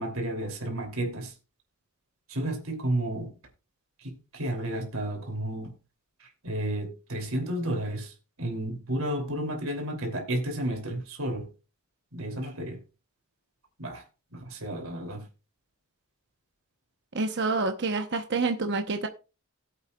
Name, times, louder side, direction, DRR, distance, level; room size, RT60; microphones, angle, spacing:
voice 1, 0.0-1.3 2.3-3.4 4.0-5.7 6.2-8.1 8.4-11.5 12.1-12.8 13.8-14.0 14.3-15.3, right 1 dB, 70° right, 2.8 m, -32 dB
voice 2, 17.1-19.1, right 3 dB, 50° right, 0.9 m, -27 dB
18.0 x 8.0 x 2.3 m
head